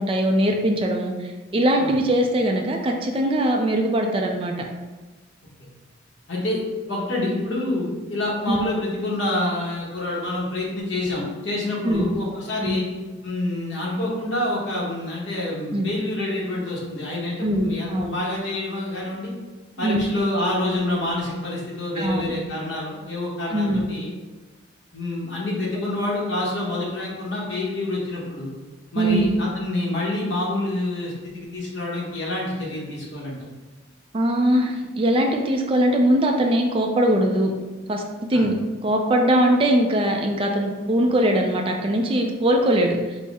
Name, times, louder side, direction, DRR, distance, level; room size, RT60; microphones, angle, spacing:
voice 1, 0.0-4.5 8.5-8.7 11.8-12.1 12.6-12.8 15.7-15.9 17.4-18.2 19.8-20.0 22.0-22.3 23.5-23.8 29.0-29.3 34.1-37.5 37.9-38.0 38.3-38.5 38.8-43.2, right 1 dB, 25° right, 2 dB, 0.3 m, -21 dB
voice 2, 6.3-6.6 6.9-12.8 13.2-19.3 19.8-24.1 24.9-28.5 28.9-33.4 38.3-38.4, left 2 dB, 60° left, -4 dB, 1.0 m, -27 dB
4.1 x 2.0 x 3.5 m, 1.2 s
head